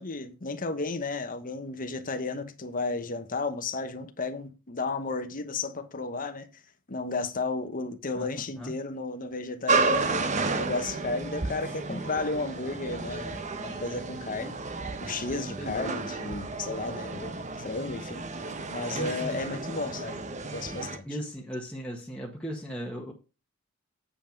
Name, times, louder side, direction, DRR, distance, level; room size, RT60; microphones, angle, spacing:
voice 1, 0.0-6.5 6.9-14.6 15.0-17.3 17.6-18.2 18.7-20.2 20.5-21.1, left 3 dB, 40° left, 1.1 m, -33 dB
sound 1, 9.7-21.0, right 3 dB, 35° right, 1.0 m, -32 dB
voice 2, 15.6-16.0 18.9-19.4 21.0-23.1, equal, 5° left, 1.5 m, -37 dB
8.8 x 5.7 x 5.1 m
head